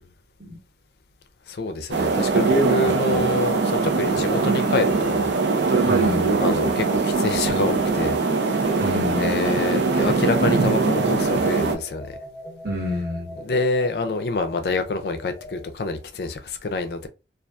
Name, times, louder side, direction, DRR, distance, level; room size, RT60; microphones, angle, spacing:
voice 1, 1.5-5.3 5.6-5.9 6.4-8.2 8.6-8.8 9.2-12.2 13.4-17.1, left 3 dB, 65° left, 0.4 m, -26 dB
sound 1, 1.9-11.8, right 4 dB, 85° right, 0.5 m, -21 dB
voice 2, 2.8-3.3 5.8-6.4 8.8-9.5 12.6-13.4, left 2 dB, 60° right, 1.3 m, -29 dB
sound 2, 8.3-15.7, left 1 dB, 25° left, 0.8 m, -41 dB
2.6 x 2.3 x 2.2 m
head